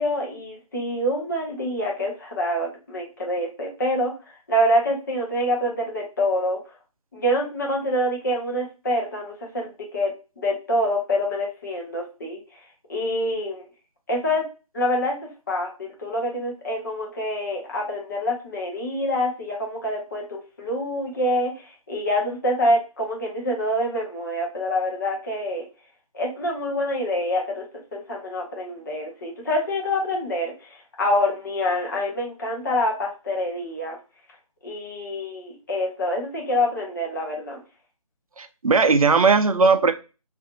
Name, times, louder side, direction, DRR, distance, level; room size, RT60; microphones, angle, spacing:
voice 1, 0.0-4.2 4.5-6.6 7.1-12.4 12.9-13.7 14.1-14.5 14.7-15.2 15.5-25.7 26.1-27.7 27.9-34.0 34.6-37.6, equal, 30° left, -2 dB, 0.7 m, -26 dB
voice 2, 38.4-39.9, right 4 dB, 65° right, 10 dB, 0.4 m, -18 dB
2.6 x 2.5 x 2.4 m, 0.31 s
figure-of-eight pair, 155°, 19 cm